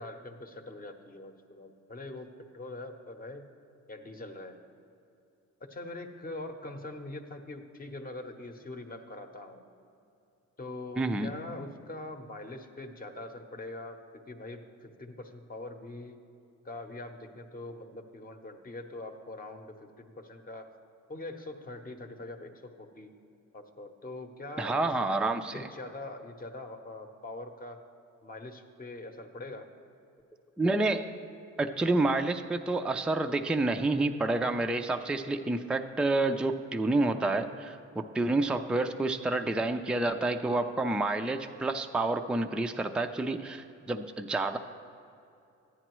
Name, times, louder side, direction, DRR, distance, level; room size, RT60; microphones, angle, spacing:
voice 1, 0.0-3.5 3.9-4.6 5.6-9.7 10.6-16.2 16.6-20.7 21.1-23.1 23.5-24.9 25.5-27.8 28.2-29.7, left 2 dB, 30° left, 5 dB, 0.9 m, -43 dB
voice 2, 11.0-11.3 24.6-25.7 30.6-31.1 31.6-44.6, right 2 dB, 5° right, 6 dB, 0.4 m, -29 dB
14.0 x 9.8 x 3.0 m, 2.7 s
cardioid pair, 90°, 30 cm